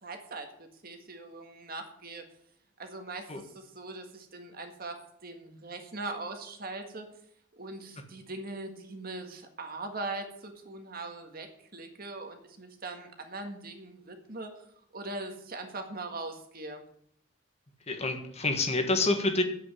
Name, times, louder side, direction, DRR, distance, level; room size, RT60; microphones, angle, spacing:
voice 1, 0.0-2.2 2.8-7.1 7.6-14.5 14.9-16.8, right 2 dB, 50° right, 5 dB, 1.7 m, -41 dB
voice 2, 17.9-19.4, left 2 dB, 35° left, 6 dB, 1.5 m, -27 dB
8.4 x 8.3 x 8.5 m, 0.69 s
head